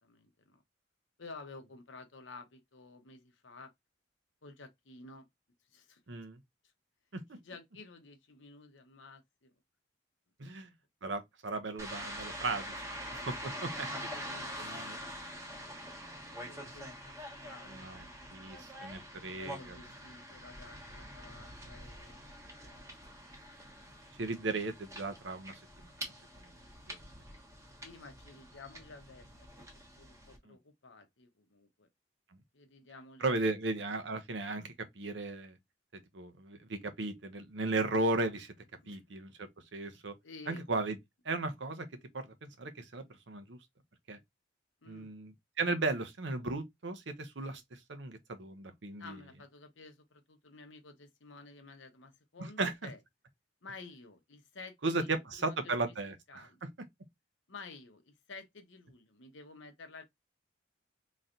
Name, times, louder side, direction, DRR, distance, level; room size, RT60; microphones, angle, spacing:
voice 1, 0.0-0.6 1.2-3.7 4.4-5.3 5.6-6.0 7.3-9.5 10.4-10.5 13.8-15.5 16.2-19.1 19.4-22.3 22.5-22.9 23.8-24.0 27.8-29.7 29.9-31.9 32.5-33.6 38.8-39.0 40.2-40.6 44.8-45.1 47.4-47.6 49.0-53.0 53.6-56.0 56.3-56.6 57.5-60.0, left 3 dB, 85° left, 1.0 m, -52 dB
voice 2, 6.1-6.4 7.1-7.4 10.4-10.7 11.0-12.7 13.1-13.9 14.6-15.0 17.7-18.0 18.3-19.6 24.2-25.9 26.4-26.5 26.9-27.0 30.5-30.6 33.2-35.6 35.9-38.5 38.9-40.1 40.5-41.0 41.2-41.9 42.1-43.6 44.1-44.2 44.9-49.2 52.6-52.9 54.8-56.5, right 2 dB, 65° right, 0.8 m, -36 dB
washington whitehouse crossing, 11.8-30.4, equal, 15° right, 1.2 m, -45 dB
4.0 x 3.2 x 2.6 m
head